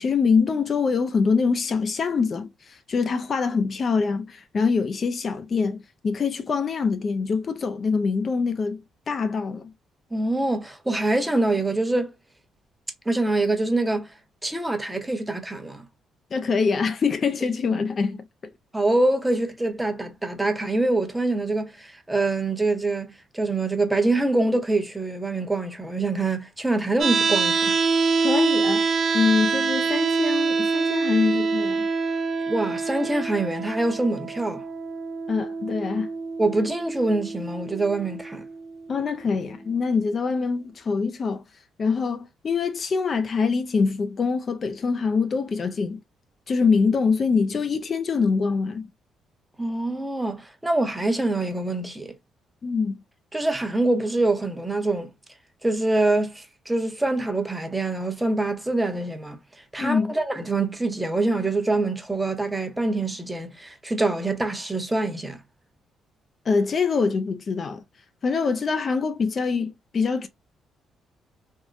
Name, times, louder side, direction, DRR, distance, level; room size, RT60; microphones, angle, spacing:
voice 1, 0.0-8.8 9.1-9.7 16.3-18.2 28.2-28.9 29.1-31.9 35.3-36.1 38.9-41.4 41.8-46.0 46.5-48.9 52.6-53.0 59.8-60.1 66.5-67.8 68.2-70.3, left 5 dB, 45° left, 0.4 m, -24 dB
voice 2, 10.1-12.1 13.1-14.1 14.4-15.8 17.7-17.8 18.7-27.8 32.5-34.6 36.4-38.5 49.6-52.1 53.3-55.1 55.6-59.4 59.7-65.4, right 2 dB, 10° right, 0.8 m, -25 dB
sound 1, 27.0-39.0, right 4 dB, 50° right, 0.5 m, -25 dB
3.5 x 2.1 x 2.4 m
cardioid pair, 90°, 0 cm